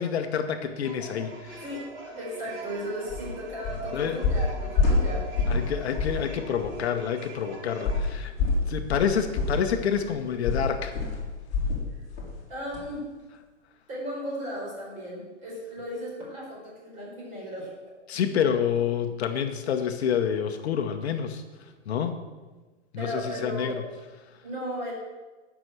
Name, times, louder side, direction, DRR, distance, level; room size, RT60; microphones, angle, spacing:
voice 1, 0.0-1.6 3.9-4.2 5.5-8.3 8.7-11.0 18.1-21.4 21.9-22.2 22.9-23.8, left 8 dB, 60° left, 7 dB, 1.1 m, -28 dB
sound 1, 0.8-8.0, right 1 dB, 50° right, 2.6 m, -43 dB
voice 2, 2.1-5.3 8.4-8.5 12.5-13.0 13.9-17.7 23.0-23.8 24.4-24.9, equal, 20° right, -5 dB, 4.1 m, -35 dB
sound 2, 3.1-3.3 3.6-3.9 4.2-5.7 6.0-6.2 6.6-6.7 7.8-11.8 12.2-12.4 12.7-12.8, left 3 dB, 20° left, 2.3 m, -26 dB
9.7 x 6.1 x 7.7 m, 1.2 s
hypercardioid pair, 175°, 35 cm